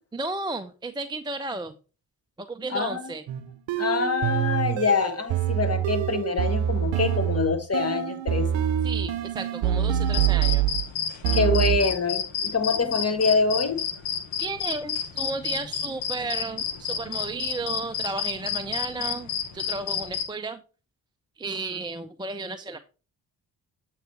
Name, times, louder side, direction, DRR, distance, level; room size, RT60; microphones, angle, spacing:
voice 1, 0.1-1.7 2.4-3.2 8.8-10.6 14.4-20.6 21.4-22.8, right 3 dB, 10° right, 8 dB, 0.5 m, -33 dB
voice 2, 2.7-3.1 3.8-8.5 11.3-13.8, left 4 dB, 30° left, 7 dB, 1.5 m, -25 dB
sound 1, 3.3-10.8 11.2-12.0, right 10 dB, 75° right, 0.7 m, -25 dB
sound 2, 10.1-20.3, left 8 dB, 80° left, 1.1 m, -31 dB
7.8 x 3.2 x 4.6 m, 0.34 s
hypercardioid pair, 40°, 46 cm